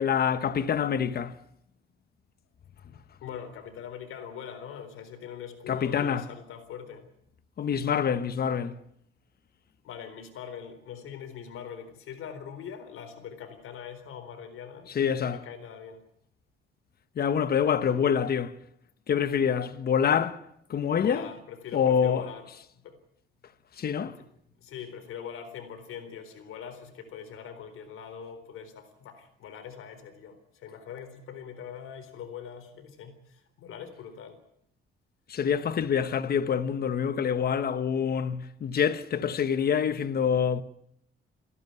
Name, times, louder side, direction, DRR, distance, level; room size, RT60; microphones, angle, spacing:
voice 1, 0.0-1.4 5.7-6.2 7.6-8.8 14.9-15.4 17.2-18.6 19.1-20.4 20.7-21.3 21.7-22.3 23.8-24.2 35.3-40.6, left 7 dB, 45° left, 1.2 m, -26 dB
voice 2, 3.2-7.1 9.8-16.0 21.0-22.5 22.7-23.0 24.0-24.1 24.6-34.4, left 8 dB, 80° left, 4.0 m, -42 dB
29.0 x 11.5 x 9.5 m
cardioid pair, 130°, 21 cm